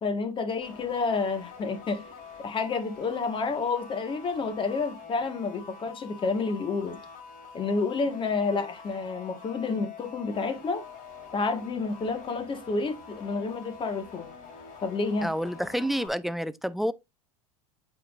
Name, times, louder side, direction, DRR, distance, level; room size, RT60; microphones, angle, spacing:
voice 1, 0.0-2.0 2.4-7.0 7.5-10.9 11.3-14.3 14.8-15.3, left 4 dB, 30° left, 1.6 m, -29 dB
sound 1, 0.6-16.1, left 5 dB, 50° left, 3.0 m, -46 dB
voice 2, 15.2-16.9, equal, ahead, 0.4 m, -29 dB
8.3 x 4.7 x 2.5 m
hypercardioid pair, 90°, 17 cm